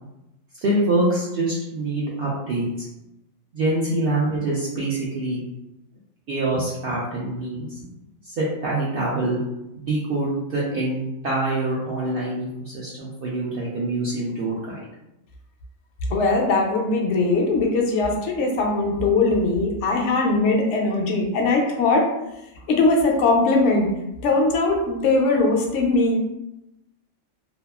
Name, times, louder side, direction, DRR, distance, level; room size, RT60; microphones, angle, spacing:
voice 1, 0.6-2.9 3.5-5.4 6.3-7.9 8.2-9.4 9.8-14.7, right 2 dB, 60° right, -6 dB, 0.6 m, -25 dB
voice 2, 16.1-22.0 22.7-23.9 24.2-26.2, left 3 dB, 70° left, 0 dB, 0.9 m, -20 dB
2.7 x 2.3 x 2.2 m, 0.89 s
omnidirectional pair, 1.3 m